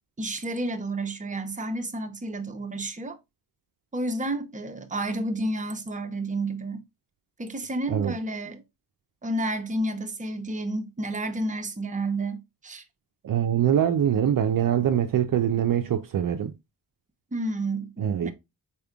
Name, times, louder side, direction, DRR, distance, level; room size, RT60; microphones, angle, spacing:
voice 1, 0.2-3.2 3.9-6.8 7.4-8.6 9.2-12.8 17.3-18.3, right 1 dB, 20° right, 0.7 m, -30 dB
voice 2, 13.2-16.5 18.0-18.3, right 9 dB, 50° right, 0.5 m, -23 dB
4.3 x 3.5 x 2.3 m
cardioid pair, 60°, 43 cm